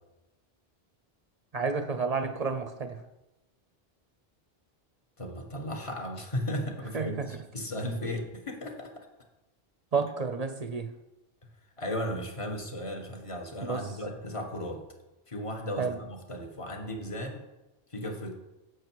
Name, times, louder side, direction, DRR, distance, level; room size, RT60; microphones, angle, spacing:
voice 1, 1.5-3.0 6.9-7.3 9.9-10.9 13.6-13.9 15.8-16.0, right 5 dB, 45° right, 8 dB, 0.7 m, -30 dB
voice 2, 5.2-8.9 11.8-14.8 15.3-17.5 17.9-18.3, equal, 30° left, 3 dB, 1.4 m, -35 dB
11.0 x 8.2 x 4.7 m, 0.99 s
omnidirectional pair, 1.1 m